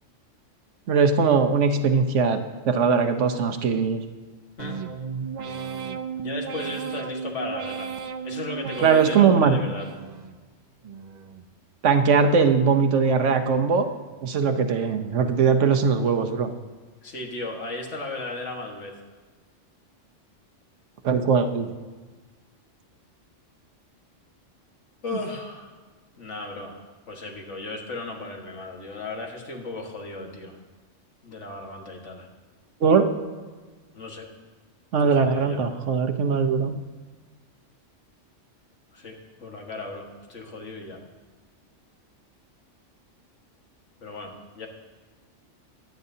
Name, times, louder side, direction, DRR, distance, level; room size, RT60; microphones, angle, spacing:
voice 1, 0.9-2.4 2.6-4.0 8.8-9.6 11.8-13.9 14.2-16.5 21.0-21.7 32.8-33.1 34.9-36.7, right 5 dB, 75° right, 7 dB, 1.2 m, -20 dB
sound 1, 4.6-10.4 10.8-11.5 11.9-12.6 13.0-13.7 14.1-14.7 15.2-15.7, right 6 dB, 50° right, 0.5 m, -36 dB
voice 2, 6.2-7.9 8.2-9.9 17.0-19.0 25.0-25.7 26.2-30.6 31.2-32.3 33.9-34.3 35.0-35.6 38.9-41.0 44.0-44.7, left 2 dB, 75° left, 1 dB, 1.9 m, -36 dB
22.0 x 9.2 x 2.8 m, 1.4 s
omnidirectional pair, 1.3 m